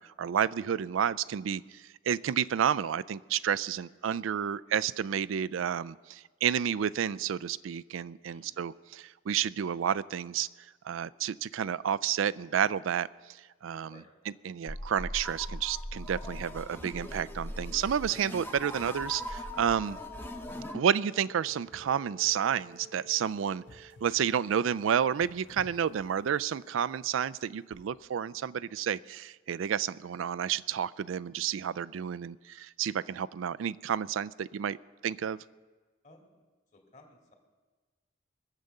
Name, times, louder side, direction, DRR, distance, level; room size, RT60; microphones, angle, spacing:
voice 1, 0.0-10.5 10.8-13.1 13.6-13.9 14.5-20.0 20.7-34.8 35.0-35.4, right 8 dB, 90° right, 16 dB, 0.4 m, -30 dB
voice 2, 8.3-8.7 13.9-14.1 36.0-36.5 36.7-37.3, left 2 dB, 35° left, 1 dB, 2.4 m, -57 dB
sound 1, 14.7-20.8, left 1 dB, 10° left, 0.8 m, -40 dB
sound 2, 16.9-24.8, equal, 40° right, 0.8 m, -57 dB
sound 3, 21.4-26.8 27.7-28.0, left 1 dB, 75° left, 1.2 m, -57 dB
22.0 x 8.3 x 6.6 m, 1.4 s
head